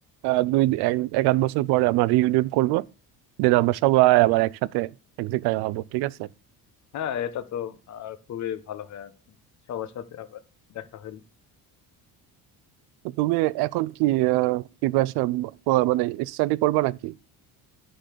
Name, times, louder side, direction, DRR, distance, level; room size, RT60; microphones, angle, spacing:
voice 1, 0.2-2.8 3.4-4.9 5.2-6.3 13.2-17.1, right 18 dB, 80° right, 0.5 m, -22 dB
voice 2, 6.9-9.1 9.7-10.4 10.7-11.2, left 10 dB, 45° left, 1.0 m, -34 dB
10.0 x 4.0 x 6.6 m
cardioid pair, 130°, 39 cm